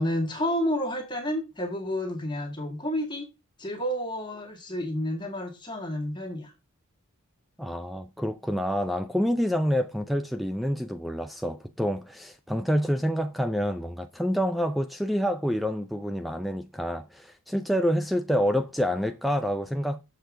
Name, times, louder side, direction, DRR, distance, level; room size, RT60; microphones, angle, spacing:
voice 1, 0.0-3.3 3.6-6.5, equal, 20° left, 1.8 m, -30 dB
voice 2, 7.6-20.0, equal, ahead, 0.4 m, -27 dB
7.8 x 6.7 x 3.6 m
head